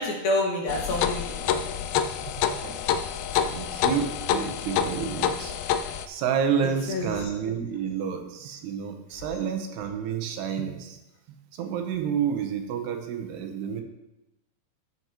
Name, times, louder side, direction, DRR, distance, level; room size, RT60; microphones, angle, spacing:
voice 1, 0.0-1.7 6.6-7.3, left 1 dB, 65° left, -2 dB, 3.5 m, -29 dB
sound 1, 0.7-6.0, left 9 dB, 85° left, 2.1 m, -27 dB
voice 2, 2.0-2.8 3.4-5.5 6.1-11.0 11.6-13.8, right 7 dB, 80° right, 5 dB, 2.9 m, -30 dB
15.5 x 7.1 x 2.9 m, 0.94 s
omnidirectional pair, 4.8 m